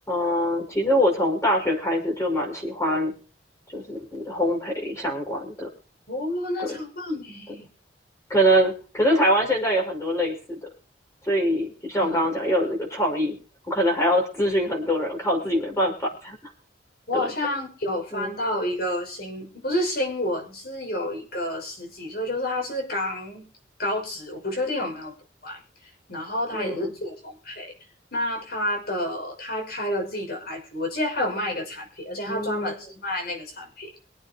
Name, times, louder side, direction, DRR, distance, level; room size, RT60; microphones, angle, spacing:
voice 1, 0.1-3.1 3.7-5.7 6.6-6.8 7.6-7.7 8.3-10.7 11.2-13.4 13.7-16.4 17.1-17.3 18.1-18.4 26.5-26.9 32.2-32.7, equal, 15° left, 1 dB, 5.8 m, -24 dB
voice 2, 6.1-7.7 12.0-12.3 17.1-23.5 23.8-25.1 25.4-25.6 26.1-27.7 28.1-33.9, left 1 dB, 55° left, 3 dB, 6.2 m, -29 dB
24.5 x 8.9 x 3.0 m, 0.38 s
head